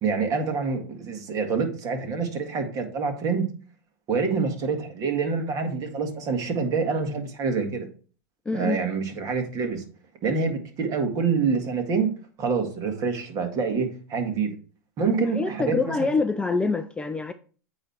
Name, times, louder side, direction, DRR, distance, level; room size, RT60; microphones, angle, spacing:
voice 1, 0.0-3.5 4.1-7.9 8.5-9.8 10.2-12.1 12.4-14.5 15.0-16.1, right 5 dB, 35° right, 1.8 m, -26 dB
voice 2, 8.5-8.8 15.2-17.3, left 3 dB, 10° left, 0.4 m, -25 dB
8.8 x 3.2 x 4.4 m
hypercardioid pair, 110°, 10 cm